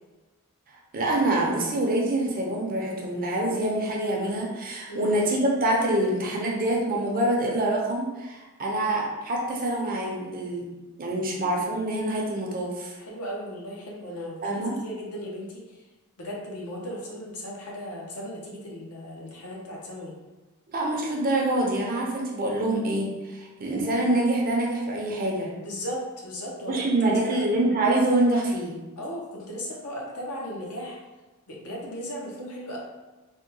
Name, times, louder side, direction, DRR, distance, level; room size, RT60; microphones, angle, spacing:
voice 1, 0.9-10.6 11.0-12.9 14.4-14.8 20.7-25.5 26.7-28.8, right 1 dB, 40° right, -2 dB, 0.6 m, -25 dB
voice 2, 13.0-15.8 16.2-20.1 25.6-27.4 29.0-31.0 31.5-32.8, equal, 70° left, -3 dB, 0.8 m, -36 dB
3.5 x 2.2 x 2.7 m, 1.1 s
head